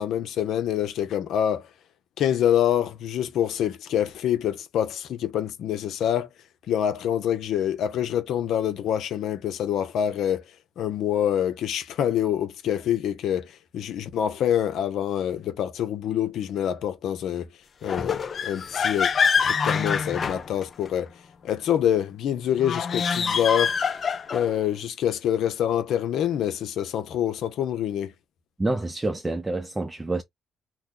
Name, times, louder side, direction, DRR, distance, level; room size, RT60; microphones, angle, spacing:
voice 1, 0.0-1.7 2.2-6.3 6.7-10.4 10.8-17.5 17.8-19.1 19.4-21.1 21.4-23.8 24.3-28.1, left 10 dB, 75° left, 0.8 m, -26 dB
sound 1, 17.8-21.0 22.6-24.6, left 6 dB, 45° left, 0.5 m, -25 dB
voice 2, 28.6-30.2, right 2 dB, 20° right, 0.4 m, -27 dB
3.0 x 2.2 x 3.8 m
cardioid pair, 90°, 0 cm